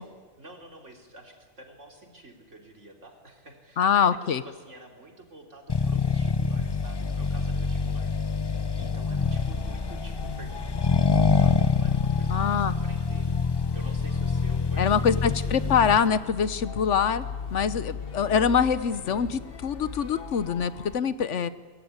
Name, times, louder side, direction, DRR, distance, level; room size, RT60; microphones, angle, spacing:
voice 1, 0.0-15.6 20.9-21.5, right 2 dB, 75° right, 2 dB, 3.9 m, -49 dB
voice 2, 3.8-4.4 12.3-12.7 14.8-17.3 17.5-21.5, left 7 dB, 75° left, 14 dB, 1.3 m, -24 dB
Accelerating revving vroom, 5.7-16.1, left 4 dB, 25° left, 0.6 m, -26 dB
sound 1, 9.1-21.0, left 5 dB, 50° left, 1.4 m, -39 dB
23.5 x 21.0 x 9.6 m, 1.5 s
omnidirectional pair, 1.2 m